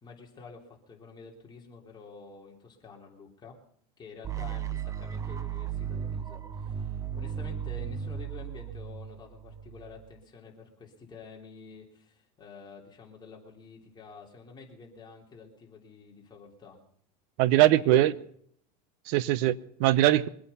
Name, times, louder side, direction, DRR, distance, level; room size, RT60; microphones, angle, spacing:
voice 1, 0.0-3.6 4.0-16.8 17.5-18.1, left 4 dB, 20° left, 3.4 m, -49 dB
sound 1, 4.2-10.2, right 8 dB, 15° right, 0.6 m, -36 dB
voice 2, 17.4-18.1 19.1-20.3, right 14 dB, 60° right, 0.8 m, -22 dB
23.5 x 8.7 x 5.6 m
supercardioid pair, 130°, 21 cm